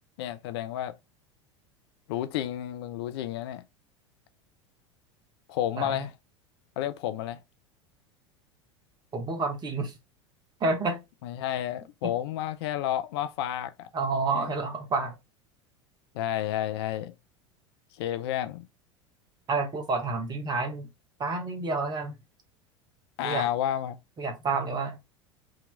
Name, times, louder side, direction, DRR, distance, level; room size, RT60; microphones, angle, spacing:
voice 1, 0.2-0.9 2.1-3.6 5.5-6.1 6.8-7.4 11.2-13.9 14.2-14.5 16.1-17.1 17.9-18.7 23.2-24.0, left 11 dB, 55° left, 0.4 m, -31 dB
voice 2, 5.8-6.1 9.1-10.0 10.6-11.0 12.0-12.1 13.9-15.1 19.5-20.9 21.2-22.1 23.2-23.5 24.2-25.0, right 3 dB, 25° right, 1.1 m, -29 dB
3.7 x 2.9 x 3.2 m
figure-of-eight pair, 80°, 16 cm